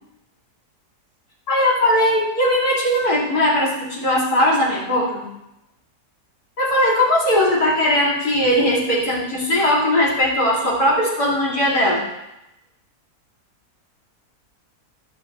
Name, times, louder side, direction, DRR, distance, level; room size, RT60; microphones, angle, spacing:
voice 1, 1.5-5.2 6.6-12.0, left 1 dB, 65° left, -5 dB, 3.2 m, -19 dB
15.0 x 5.5 x 4.6 m, 0.90 s
omnidirectional pair, 1.8 m